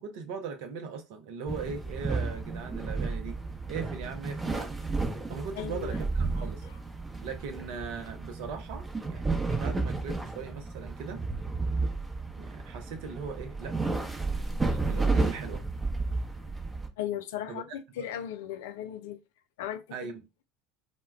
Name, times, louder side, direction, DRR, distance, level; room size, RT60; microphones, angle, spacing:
voice 1, 0.0-3.4 3.7-4.8 5.3-6.7 7.2-11.2 12.4-14.0 14.3-15.6 17.5-17.6 18.0-18.1 19.9-20.2, right 5 dB, 65° right, 0.6 m, -39 dB
sound 1, 1.5-16.9, right 3 dB, 15° right, 0.8 m, -32 dB
voice 2, 5.6-6.0 9.5-9.6 17.0-19.2 19.6-20.0, left 11 dB, 70° left, 0.3 m, -36 dB
2.2 x 2.1 x 3.3 m
hypercardioid pair, 75°, 0 cm